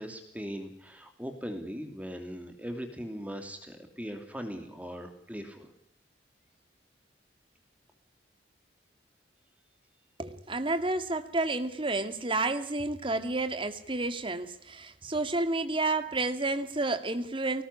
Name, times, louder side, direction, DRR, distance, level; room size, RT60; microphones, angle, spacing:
voice 1, 0.0-5.7, equal, 10° right, 2.9 m, -39 dB
voice 2, 10.2-17.6, right 2 dB, 30° right, 2.2 m, -30 dB
24.5 x 19.5 x 9.9 m
head